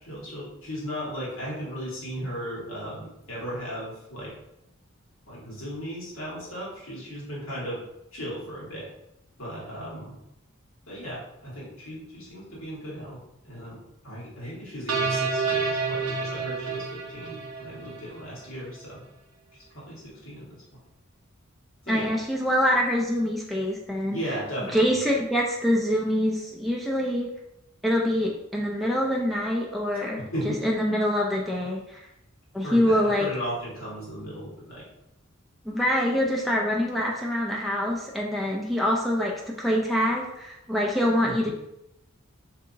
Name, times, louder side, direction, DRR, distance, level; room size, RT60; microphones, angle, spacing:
voice 1, 0.1-4.3 5.3-7.8 8.1-8.9 9.4-10.1 10.9-13.2 13.4-19.0 19.7-20.6 21.8-22.1 24.1-25.0 30.2-30.6 32.6-34.8 41.2-41.5, equal, 70° left, -6 dB, 1.4 m, -36 dB
sound 1, 14.9-18.2, right 4 dB, 90° right, 0.5 m, -29 dB
voice 2, 21.9-24.2 24.7-27.3 27.8-32.0 32.5-33.3 35.6-41.5, equal, ahead, -3 dB, 0.3 m, -25 dB
3.7 x 2.7 x 2.6 m, 0.84 s
head